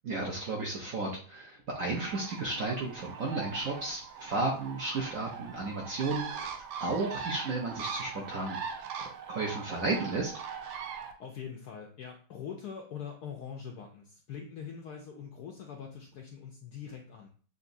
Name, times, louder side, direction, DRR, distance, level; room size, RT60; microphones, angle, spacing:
voice 1, 0.0-8.6 9.0-10.3, right 3 dB, 60° right, -2 dB, 0.9 m, -33 dB
Bird, 1.9-11.1, right 7 dB, 80° right, 1.4 m, -41 dB
voice 2, 11.2-17.3, left 7 dB, 80° left, 2 dB, 0.9 m, -43 dB
6.8 x 2.6 x 2.6 m, 0.43 s
omnidirectional pair, 2.2 m